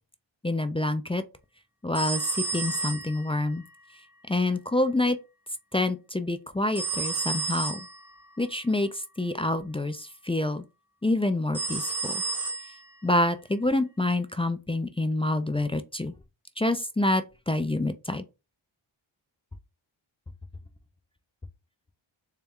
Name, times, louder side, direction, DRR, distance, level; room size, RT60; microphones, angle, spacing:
voice 1, 0.4-1.2 1.8-3.6 4.3-5.2 5.7-7.9 8.4-10.6 11.0-12.2 13.0-16.1 16.6-18.2, left 2 dB, 15° left, 0.3 m, -27 dB
sound 1, 1.9-3.5 6.8-8.0 11.5-12.9, right 4 dB, 5° right, 0.8 m, -31 dB
4.1 x 2.3 x 3.6 m
wide cardioid pair, 70°, 49 cm